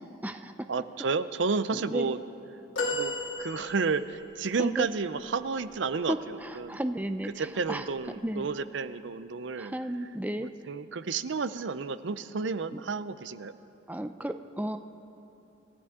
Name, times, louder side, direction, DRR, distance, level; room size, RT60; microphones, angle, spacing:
voice 1, 0.7-2.2 2.9-3.1 3.4-6.8 7.2-9.7 10.0-10.1 10.4-13.6, right 4 dB, 70° right, 13 dB, 0.6 m, -31 dB
sound 1, 2.8-4.2 6.6-6.7 8.1-8.2, left 1 dB, 85° left, 2.8 m, -33 dB
voice 2, 6.7-7.3 7.7-7.8 8.2-8.5 9.6-10.5 12.7-12.8 13.9-14.8, right 1 dB, 10° right, 8 dB, 0.5 m, -32 dB
28.0 x 14.0 x 3.7 m, 3.0 s
head